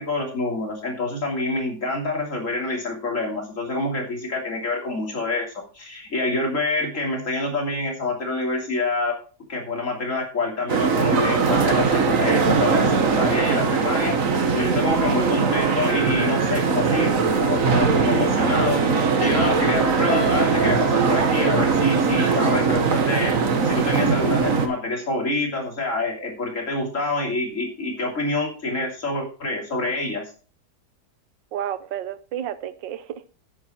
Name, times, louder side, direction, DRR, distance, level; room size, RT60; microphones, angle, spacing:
voice 1, 0.0-9.2 9.5-23.3 23.6-30.2, left 2 dB, 45° left, 3.3 m, -27 dB
sound 1, 10.7-24.7, right 5 dB, 50° right, 1.5 m, -20 dB
sound 2, 20.1-24.0 24.5-24.8 25.2-25.3, right 1 dB, 80° left, 2.6 m, -32 dB
voice 2, 31.5-33.3, right 10 dB, 85° right, 1.5 m, -31 dB
9.4 x 8.8 x 4.4 m
omnidirectional pair, 1.9 m